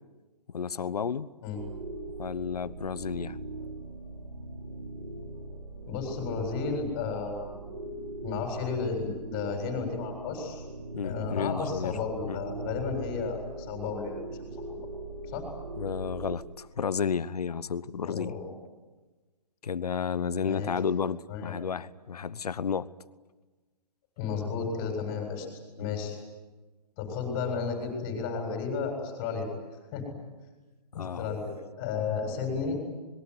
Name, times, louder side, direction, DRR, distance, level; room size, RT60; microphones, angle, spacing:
voice 1, 0.5-1.3 2.2-3.4 10.9-12.0 12.2-12.4 15.8-18.4 19.6-22.9 25.8-26.0 31.0-31.3, left 6 dB, 65° left, 18 dB, 1.1 m, -32 dB
sound 1, 1.5-16.4, right 2 dB, 75° right, 4.9 m, -40 dB
voice 2, 5.9-7.5 8.2-10.6 11.0-14.2 14.6-14.7 15.3-15.5 18.1-18.5 20.4-20.8 21.3-21.6 24.2-25.5 25.8-26.2 27.0-29.5 29.9-30.0 30.9-32.8, left 5 dB, 25° left, 3 dB, 7.6 m, -33 dB
26.0 x 22.0 x 9.9 m, 1.2 s
figure-of-eight pair, 140°, 21 cm